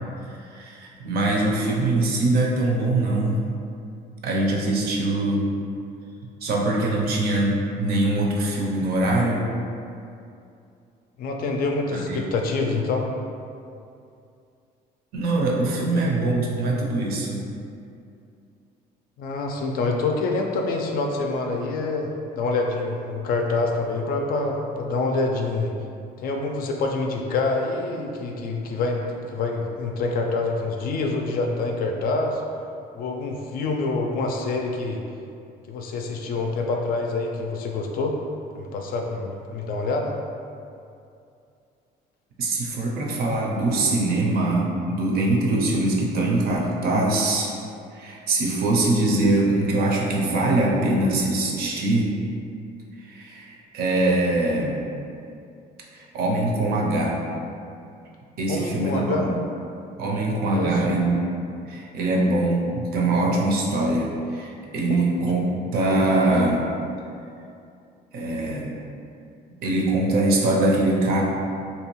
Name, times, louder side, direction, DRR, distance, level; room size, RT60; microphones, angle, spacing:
voice 1, 0.2-3.4 4.2-5.4 6.4-9.5 11.9-12.2 15.1-17.4 42.4-47.5 47.9-52.1 53.0-54.8 55.9-57.2 58.4-59.4 60.0-61.2 61.7-65.4 65.7-66.7 68.1-68.8 69.6-71.2, right 2 dB, 65° right, -2 dB, 0.6 m, -23 dB
voice 2, 11.2-13.1 15.9-16.0 19.2-22.1 22.4-25.7 26.2-29.0 29.3-32.4 32.9-35.0 35.7-38.2 38.5-40.1 58.5-59.3 60.5-60.8 64.9-65.0, left 3 dB, 60° left, 2 dB, 0.4 m, -26 dB
2.7 x 2.3 x 3.0 m, 2.5 s
cardioid pair, 110°, 17 cm